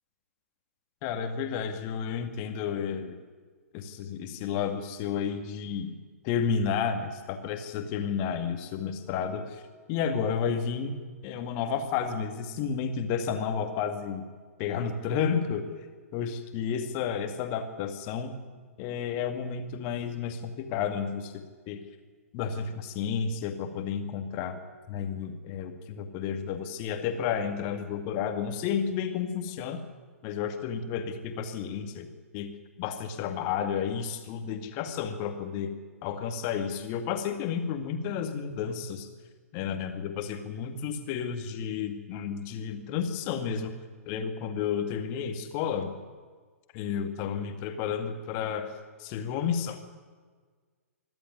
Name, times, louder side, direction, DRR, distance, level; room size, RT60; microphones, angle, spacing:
voice 1, 1.0-3.2 3.7-5.9 6.2-9.6 9.9-14.2 14.6-15.7 16.1-18.4 18.8-21.8 22.3-24.6 24.9-29.8 30.2-32.1 32.3-32.5 32.8-35.7 36.0-39.1 39.5-43.7 44.1-45.9 46.7-48.7 49.0-49.8, left 7 dB, 30° left, 7 dB, 2.2 m, -31 dB
25.5 x 12.5 x 9.5 m, 1.5 s
figure-of-eight pair, 120°, 8 cm